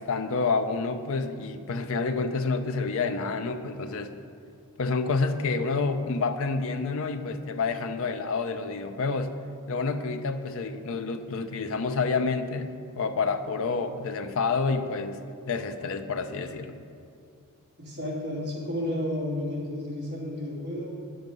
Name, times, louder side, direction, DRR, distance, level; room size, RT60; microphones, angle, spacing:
voice 1, 0.0-4.1 4.8-9.4 9.7-16.8, left 4 dB, 65° left, 8 dB, 0.6 m, -28 dB
voice 2, 17.8-21.0, left 1 dB, 50° right, -5 dB, 2.7 m, -32 dB
9.6 x 7.8 x 5.3 m, 2.4 s
head